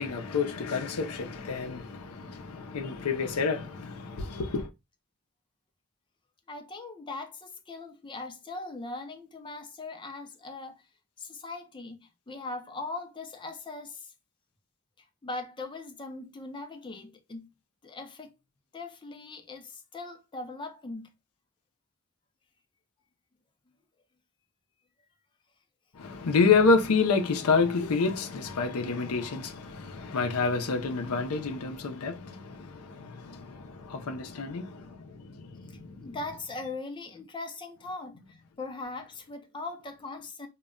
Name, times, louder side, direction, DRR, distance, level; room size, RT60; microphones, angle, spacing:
voice 1, 0.0-4.7 26.0-34.9 35.3-35.4 35.6-35.9, left 4 dB, 85° left, 0.6 m, -28 dB
voice 2, 6.5-10.8 11.2-14.1 15.2-17.5 17.8-18.3 18.7-21.1 36.0-40.5, left 3 dB, 20° left, 0.5 m, -40 dB
2.2 x 2.1 x 3.6 m
head